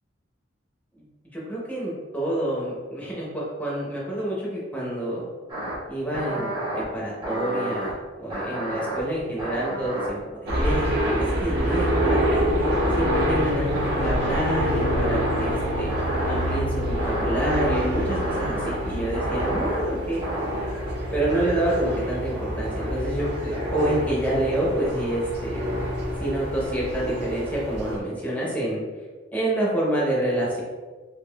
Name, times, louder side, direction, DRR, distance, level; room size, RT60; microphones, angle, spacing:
voice 1, 1.3-5.2 5.9-12.4 12.9-15.9 16.3-20.2 21.1-25.6 26.2-28.8 29.3-30.6, right 1 dB, 10° left, -6 dB, 0.7 m, -28 dB
sound 1, 5.5-5.8 6.1-6.8 7.2-7.9 8.3-10.2 10.5-11.3 11.6-12.3 12.6-13.3 13.7-14.4 14.8-15.5 15.9-16.6 17.0-17.7 18.0-18.8 19.1-19.8 20.2-20.9 21.3-22.0 22.3-22.9 23.2-25.2, right 1 dB, 25° right, 0.8 m, -32 dB
sound 2, 10.5-28.0, equal, 55° right, 0.7 m, -26 dB
3.6 x 2.9 x 2.2 m, 1.4 s
head